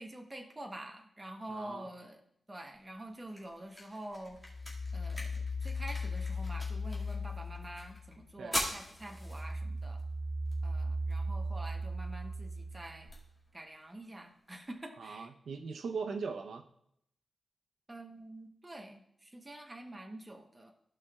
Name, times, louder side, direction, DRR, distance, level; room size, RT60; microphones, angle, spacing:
voice 1, 0.0-2.2 2.5-4.4 4.9-10.0 10.6-13.1 13.5-15.3 17.9-20.7, right 1 dB, 15° right, 3 dB, 1.0 m, -47 dB
voice 2, 1.5-1.9 8.4-8.6 15.0-16.7, right 5 dB, 85° right, 5 dB, 0.7 m, -40 dB
sound 1, 2.7-14.7, left 1 dB, 10° left, 2.1 m, -45 dB
sound 2, 4.4-8.3 8.7-13.2, left 1 dB, 45° right, 2.3 m, -37 dB
15.0 x 5.5 x 2.4 m, 0.73 s
wide cardioid pair, 150°, 0 cm